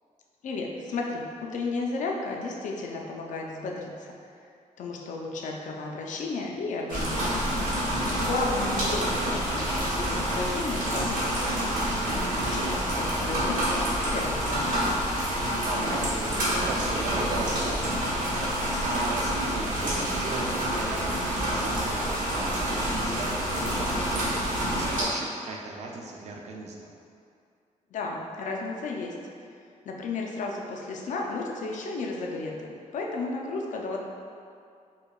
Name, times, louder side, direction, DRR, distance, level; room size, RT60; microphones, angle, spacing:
voice 1, 0.4-4.1 4.8-7.5 8.1-11.9 12.4-14.9 27.9-29.1 29.8-34.0, left 3 dB, 70° left, 0 dB, 0.4 m, -33 dB
sound 1, 6.9-25.0, equal, 80° right, 1.0 m, -28 dB
voice 2, 7.9-8.3 15.6-18.0 18.3-26.9, right 3 dB, 55° right, -1 dB, 0.5 m, -37 dB
4.6 x 2.2 x 2.3 m, 2.4 s
cardioid pair, 125°, 13 cm